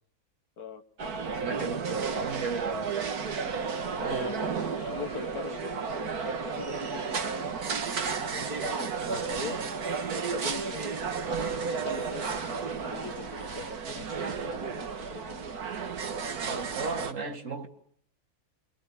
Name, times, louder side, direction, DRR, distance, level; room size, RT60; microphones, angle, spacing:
sound 1, 1.0-17.1, right 5 dB, 75° right, 2.0 m, -33 dB
voice 1, 1.2-3.2 4.0-4.3 16.4-17.7, right 4 dB, 55° right, 2.4 m, -35 dB
sound 2, 1.7-13.7, left 2 dB, 30° left, 1.9 m, -50 dB
voice 2, 3.9-7.2 8.3-9.6 10.1-11.3 11.7-15.5 17.2-17.4, left 5 dB, 80° left, 2.1 m, -42 dB
24.5 x 24.0 x 9.7 m
omnidirectional pair, 1.6 m